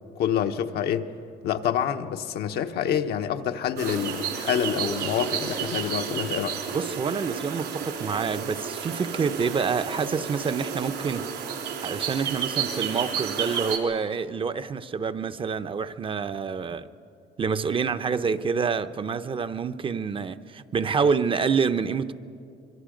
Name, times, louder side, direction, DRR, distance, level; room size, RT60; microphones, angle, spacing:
voice 1, 0.2-1.1 1.4-6.5, left 9 dB, 70° left, 1.0 m, -27 dB
sound 1, 3.8-13.8, right 7 dB, 80° right, 3.3 m, -31 dB
voice 2, 6.7-11.3 11.8-16.9 17.4-22.1, right 5 dB, 30° right, 0.7 m, -27 dB
25.5 x 22.5 x 5.1 m
cardioid pair, 110°, 17 cm